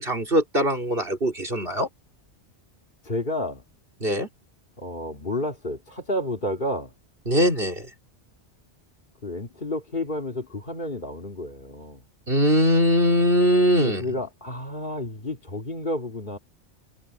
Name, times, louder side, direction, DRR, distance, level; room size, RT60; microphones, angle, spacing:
voice 1, 0.0-1.9 4.0-4.3 7.3-7.9 12.3-14.0, equal, 55° right, 4.8 m, -21 dB
voice 2, 3.0-3.6 4.8-6.9 9.2-12.0 13.8-16.4, left 1 dB, 45° left, 2.7 m, -30 dB
omnidirectional pair, 1.2 m